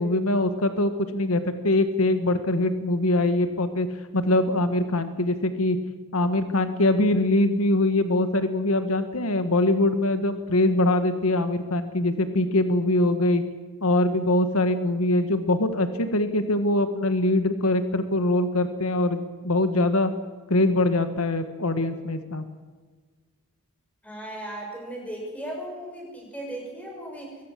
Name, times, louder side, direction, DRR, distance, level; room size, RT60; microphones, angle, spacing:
voice 1, 0.0-3.9 4.1-5.8 6.1-13.4 13.8-20.1 20.5-22.4, left 1 dB, 75° left, 9 dB, 1.7 m, -23 dB
voice 2, 24.0-27.4, right 1 dB, 5° left, -1 dB, 6.8 m, -36 dB
22.5 x 18.0 x 7.5 m, 1.4 s
head